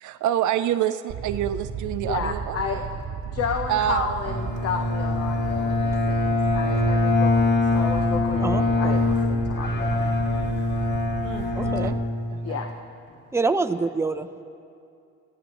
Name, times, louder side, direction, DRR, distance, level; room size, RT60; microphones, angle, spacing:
voice 1, 0.0-2.6 3.7-4.1 11.2-11.9 12.3-12.6, right 11 dB, 75° right, 11 dB, 0.6 m, -27 dB
Fire, 1.1-11.9, right 6 dB, 60° right, 1.1 m, -34 dB
voice 2, 2.0-2.8 3.3-10.0 12.4-12.7, left 6 dB, 55° left, 4 dB, 1.0 m, -32 dB
Bowed string instrument, 4.2-12.7, left 2 dB, 35° left, 1.9 m, -24 dB
voice 3, 8.4-9.0 11.5-12.0 13.3-14.4, right 3 dB, 10° right, 8 dB, 0.7 m, -26 dB
26.0 x 16.5 x 3.1 m, 2.5 s
cardioid pair, 90°, 30 cm